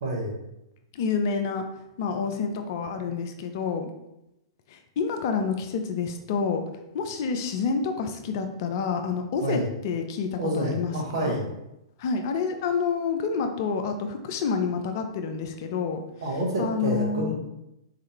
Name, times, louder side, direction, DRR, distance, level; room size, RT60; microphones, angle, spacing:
voice 1, 0.0-0.4 9.4-9.6 10.4-11.4 16.2-17.3, right 1 dB, 60° right, -1 dB, 1.3 m, -28 dB
voice 2, 0.9-1.6 2.0-3.9 4.7-6.6 6.9-11.3 12.0-16.0 16.6-17.3, left 5 dB, 50° left, 6 dB, 0.6 m, -28 dB
4.3 x 3.7 x 3.2 m, 0.88 s
figure-of-eight pair, 105°, 3 cm